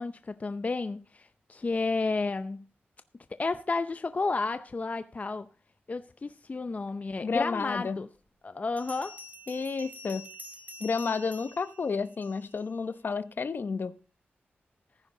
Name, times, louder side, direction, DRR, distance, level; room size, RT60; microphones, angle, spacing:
voice 1, 0.0-2.7 3.4-5.5 5.9-8.1 8.4-9.2, left 3 dB, 40° left, 0.6 m, -32 dB
voice 2, 7.2-8.0 9.5-10.3 10.8-13.9, left 5 dB, 55° left, 0.9 m, -31 dB
Bell, 7.6-7.7 8.8-12.7, left 1 dB, 45° right, 2.6 m, -47 dB
15.0 x 10.0 x 3.8 m
wide cardioid pair, 80°, 4 cm